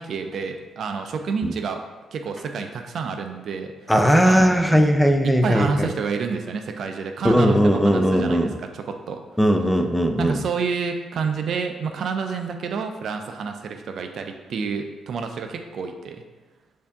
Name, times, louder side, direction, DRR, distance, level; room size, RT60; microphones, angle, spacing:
voice 1, 0.0-1.8 2.1-3.7 4.3-4.8 5.2-9.2 10.2-16.2, right 5 dB, 65° right, 5 dB, 0.4 m, -29 dB
voice 2, 3.9-5.9 7.2-8.6 9.4-10.4, equal, 5° left, 5 dB, 0.4 m, -18 dB
4.4 x 2.6 x 3.5 m, 1.2 s
cardioid pair, 70°, 0 cm